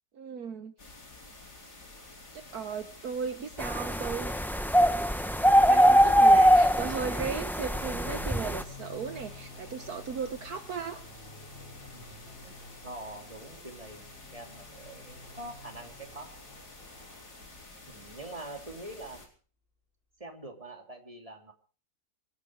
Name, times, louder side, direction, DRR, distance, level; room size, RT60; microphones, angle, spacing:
voice 1, 0.1-0.7 2.1-4.3 4.7-5.0 5.4-11.0, right 6 dB, 65° right, 8 dB, 1.6 m, -36 dB
sound 1, 0.8-19.3, left 2 dB, 75° left, 5.0 m, -50 dB
sound 2, 3.6-8.6, equal, ahead, 0.5 m, -22 dB
sound 3, 7.7-17.6, left 2 dB, 30° left, 8.1 m, -50 dB
voice 2, 11.8-12.6 12.8-16.4 17.8-19.3 20.2-21.5, right 2 dB, 20° right, 3 dB, 3.2 m, -45 dB
26.5 x 10.0 x 4.8 m, 0.41 s
omnidirectional pair, 1.8 m